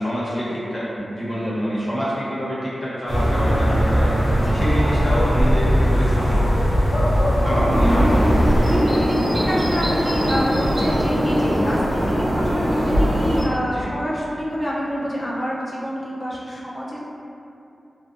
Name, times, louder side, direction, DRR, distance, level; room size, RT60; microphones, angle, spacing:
voice 1, 0.0-4.1 4.5-6.8 7.4-8.5 13.7-13.9, equal, 40° left, -10 dB, 0.8 m, -26 dB
sound 1, 3.1-8.7, equal, 70° left, 0.6 m, -19 dB
voice 2, 7.2-7.9 8.7-17.0, equal, 20° left, -6 dB, 0.5 m, -27 dB
sound 2, 7.7-13.4, equal, 50° right, 0.6 m, -21 dB
2.5 x 2.1 x 2.5 m, 2.7 s
wide cardioid pair, 105°, 0 cm